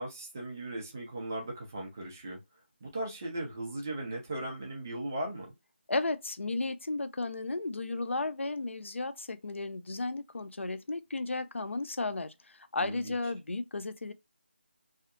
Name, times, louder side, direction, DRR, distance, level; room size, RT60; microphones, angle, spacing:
voice 1, 0.0-2.4 2.8-5.5 12.8-13.1, right 1 dB, 15° right, 0.4 m, -37 dB
voice 2, 5.9-14.1, left 2 dB, 85° left, 0.5 m, -34 dB
2.7 x 2.1 x 2.4 m
figure-of-eight pair, 175°, 7 cm